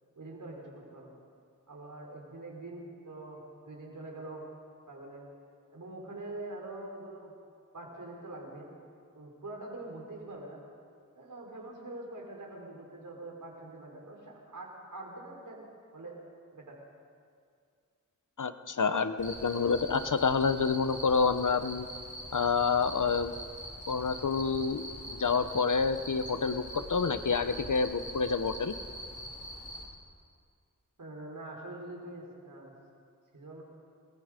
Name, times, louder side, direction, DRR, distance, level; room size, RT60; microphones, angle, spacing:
voice 1, 0.1-1.2 1.7-4.4 4.9-5.2 5.7-7.3 7.7-8.7 9.1-10.6 11.1-15.7 15.9-16.2 16.5-16.8 31.0-32.7 33.3-33.7, right 2 dB, 80° right, -1 dB, 5.0 m, -44 dB
voice 2, 18.4-21.9 22.3-23.3 23.9-28.7, left 5 dB, 75° left, 10 dB, 1.1 m, -28 dB
Cricket, 19.2-29.8, equal, 25° left, 5.6 m, -43 dB
29.5 x 20.5 x 5.3 m, 2.2 s
cardioid pair, 45°, 31 cm